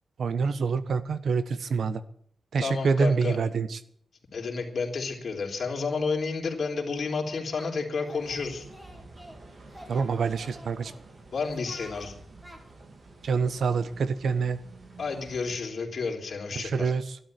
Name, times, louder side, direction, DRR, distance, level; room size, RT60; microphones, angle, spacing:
voice 1, 0.2-2.0 2.5-3.8 9.9-10.9 13.2-14.6 16.6-17.2, right 5 dB, 75° right, 13 dB, 1.2 m, -26 dB
voice 2, 2.6-3.4 4.3-8.7 11.3-12.1 15.0-16.9, left 4 dB, 65° left, 0 dB, 3.7 m, -31 dB
Singing, 7.0-7.7 8.0-9.4 9.7-11.0 11.4-12.1 12.4-12.6, equal, 10° right, 4.1 m, -48 dB
sound 1, 8.2-15.6, right 2 dB, 55° right, 3.1 m, -50 dB
12.5 x 11.5 x 9.1 m, 0.63 s
cardioid pair, 80°, 0 cm